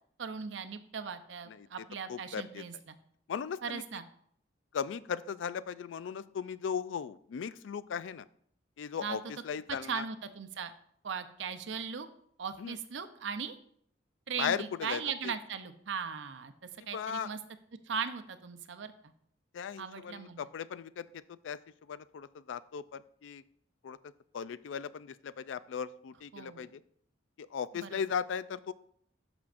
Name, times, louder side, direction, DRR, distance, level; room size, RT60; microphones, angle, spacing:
voice 1, 0.2-3.0 3.6-4.0 9.0-9.2 9.8-10.7 11.0-12.1 12.4-13.5 14.3-16.5 16.9-17.4 17.9-18.9 19.8-20.5 26.3-26.7 27.7-28.0, right 6 dB, 80° right, 10 dB, 0.6 m, -38 dB
voice 2, 2.1-2.6 3.3-3.8 4.7-8.2 8.8-10.0 12.6-12.7 14.4-15.0 16.8-17.3 19.5-21.1 21.4-21.6 21.9-23.4 23.8-24.0 24.3-26.8 27.4-28.7, left 7 dB, 85° left, 16 dB, 0.4 m, -37 dB
11.5 x 6.1 x 2.5 m, 0.65 s
head